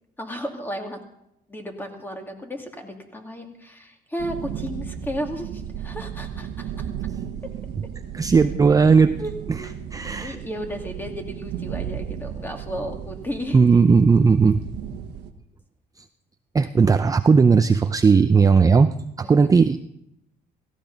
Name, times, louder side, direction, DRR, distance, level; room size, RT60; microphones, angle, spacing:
voice 1, 0.2-1.0 1.5-6.9 9.2-9.8 10.2-13.6 19.2-19.5, equal, 10° left, 3 dB, 2.4 m, -34 dB
sound 1, 4.2-15.3, right 9 dB, 85° right, 1.2 m, -34 dB
voice 2, 8.1-9.2 9.9-10.4 13.5-14.6 16.5-18.9 19.2-19.9, right 5 dB, 20° right, 9 dB, 0.5 m, -16 dB
17.0 x 15.5 x 4.0 m, 0.78 s
cardioid pair, 110°, 17 cm